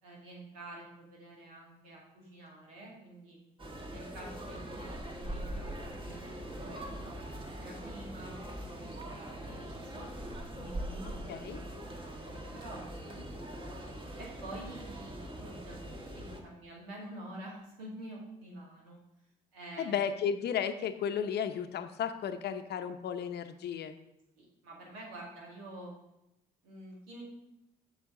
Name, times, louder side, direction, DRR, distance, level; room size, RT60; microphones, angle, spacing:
voice 1, 0.0-3.4 3.9-10.1 10.5-13.8 14.2-19.0 19.5-20.1 24.4-25.9 26.6-27.2, right 1 dB, 90° right, -3 dB, 2.0 m, -48 dB
sound 1, 3.6-16.4, right 1 dB, 25° right, 1.4 m, -42 dB
voice 2, 11.3-11.6 19.8-23.9, left 8 dB, 60° left, 9 dB, 0.7 m, -34 dB
7.2 x 6.3 x 3.7 m, 0.86 s
hypercardioid pair, 55°, 19 cm